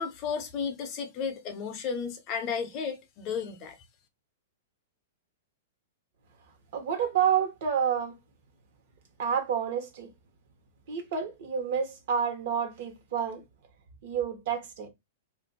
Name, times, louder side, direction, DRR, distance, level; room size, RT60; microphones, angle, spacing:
voice 1, 0.0-3.8, left 6 dB, 30° left, 0.6 m, -33 dB
voice 2, 6.7-8.1 9.2-10.1 10.9-13.4 14.0-14.9, right 7 dB, 50° right, 1.0 m, -29 dB
2.5 x 2.5 x 3.9 m
supercardioid pair, 165°, 0 cm